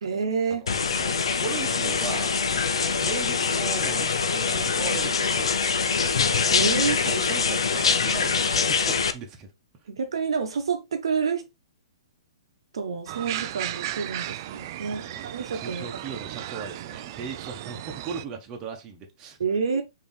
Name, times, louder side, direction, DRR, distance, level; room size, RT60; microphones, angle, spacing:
voice 1, 0.0-0.6 6.5-7.0 9.9-11.5 12.7-16.0 19.4-19.8, right 5 dB, 75° right, 0.9 m, -28 dB
voice 2, 0.6-5.6 7.0-9.5 15.0-19.4, right 5 dB, 25° right, 1.2 m, -38 dB
sound 1, 0.7-9.1, left 5 dB, 80° left, 0.6 m, -24 dB
sound 2, 13.1-18.2, right 13 dB, 45° right, 0.4 m, -35 dB
5.2 x 2.9 x 3.3 m
hypercardioid pair, 130°, 3 cm